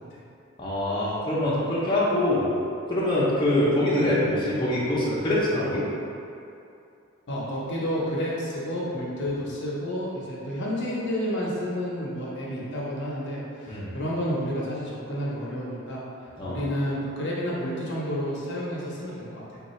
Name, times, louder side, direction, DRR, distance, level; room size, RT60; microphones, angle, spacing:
voice 1, 0.6-2.5 2.9-5.8 13.7-13.9 16.4-16.6, left 1 dB, 20° left, -9 dB, 0.6 m, -24 dB
voice 2, 7.3-16.0 16.4-19.6, equal, 55° left, -5 dB, 0.7 m, -30 dB
3.6 x 2.4 x 4.2 m, 2.6 s
head